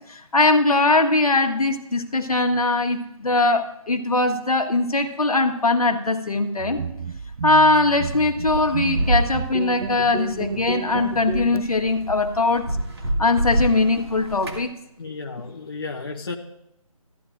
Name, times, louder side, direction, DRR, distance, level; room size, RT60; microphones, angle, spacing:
voice 1, 0.1-6.8 7.4-12.7 13.2-14.7, left 2 dB, 75° left, 5 dB, 1.4 m, -21 dB
sound 1, 6.6-11.6, right 6 dB, 80° right, 0.4 m, -31 dB
sound 2, 8.1-14.7, right 1 dB, 45° right, 1.9 m, -28 dB
voice 2, 15.0-16.3, left 4 dB, 40° left, 1 dB, 0.8 m, -33 dB
14.0 x 11.0 x 2.5 m, 0.81 s
figure-of-eight pair, 160°, 19 cm